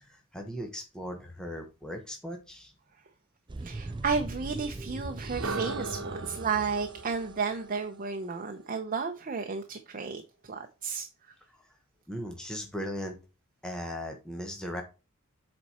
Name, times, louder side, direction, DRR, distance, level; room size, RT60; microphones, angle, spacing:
voice 1, 0.0-2.7 11.5-11.7 12.1-13.2 13.6-14.8, equal, 5° left, 1.2 m, -38 dB
sound 1, 3.5-7.4, right 2 dB, 20° right, 0.4 m, -40 dB
voice 2, 3.6-11.1, right 5 dB, 40° right, 0.8 m, -33 dB
sound 2, 5.2-9.2, right 3 dB, 65° right, 1.1 m, -39 dB
7.7 x 4.2 x 4.3 m
head